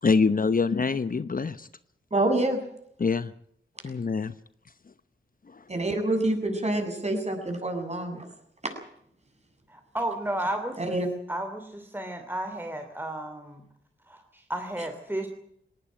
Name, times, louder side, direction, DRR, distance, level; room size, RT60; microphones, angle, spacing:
voice 1, 0.0-1.7 3.0-3.3 3.8-4.3 5.5-5.6, left 4 dB, 45° left, 14 dB, 0.9 m, -25 dB
voice 2, 2.1-2.6 5.7-8.2 8.6-8.7 10.8-11.1, right 2 dB, 35° right, 4 dB, 7.7 m, -27 dB
voice 3, 9.7-11.0 11.3-13.6 14.1-15.3, right 1 dB, 10° right, 5 dB, 2.9 m, -33 dB
19.5 x 18.5 x 9.0 m, 0.70 s
cardioid pair, 65°, 21 cm